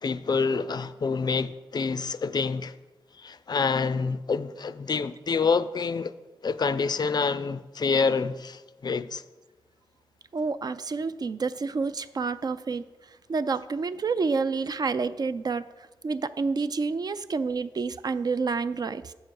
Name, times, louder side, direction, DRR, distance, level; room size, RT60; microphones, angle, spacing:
voice 1, 0.0-2.7 3.1-6.1 6.4-9.2, left 5 dB, 50° left, 0.4 m, -27 dB
voice 2, 10.3-19.1, right 4 dB, 45° right, 0.4 m, -29 dB
7.5 x 6.4 x 4.7 m
cardioid pair, 55°, 9 cm